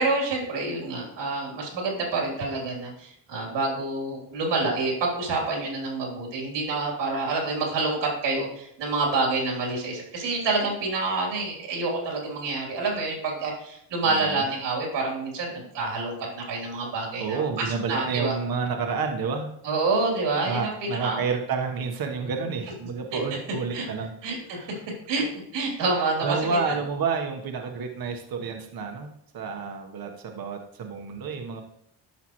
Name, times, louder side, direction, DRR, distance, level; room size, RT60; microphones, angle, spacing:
voice 1, 0.0-17.4 17.9-18.3 19.6-20.7 21.0-21.2 23.1-23.2 23.7-23.9 24.2-24.6 25.1-25.2 25.5-26.6, right 3 dB, 90° right, -1 dB, 3.4 m, -27 dB
voice 2, 14.0-14.5 17.2-19.5 20.4-24.1 24.5-24.8 26.2-31.6, right 5 dB, 55° right, 4 dB, 1.3 m, -30 dB
13.0 x 5.8 x 3.1 m, 0.73 s
cardioid pair, 100°, 42 cm